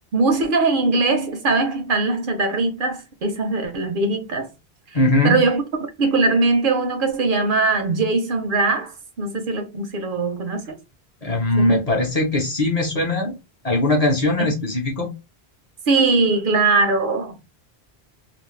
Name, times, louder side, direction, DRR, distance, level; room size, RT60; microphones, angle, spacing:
voice 1, 0.1-4.5 5.2-10.7 11.6-11.8 14.4-14.5 15.9-17.4, right 3 dB, 65° right, 0.7 m, -21 dB
voice 2, 4.9-5.4 11.2-13.3 13.6-15.1, left 1 dB, 45° left, 0.7 m, -20 dB
2.4 x 2.0 x 3.1 m
omnidirectional pair, 1.0 m